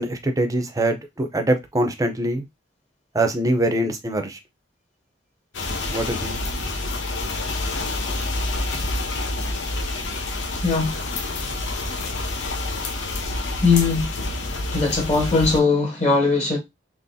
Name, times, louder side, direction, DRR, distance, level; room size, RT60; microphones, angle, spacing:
voice 1, 0.0-2.4 3.1-4.4 5.9-6.4, right 1 dB, 20° right, 0.6 m, -23 dB
sound 1, 5.5-15.6, left 2 dB, 80° left, 0.8 m, -28 dB
voice 2, 10.6-11.0 13.6-14.2 14.7-16.6, left 4 dB, 35° left, 1.4 m, -20 dB
3.9 x 3.0 x 2.6 m
head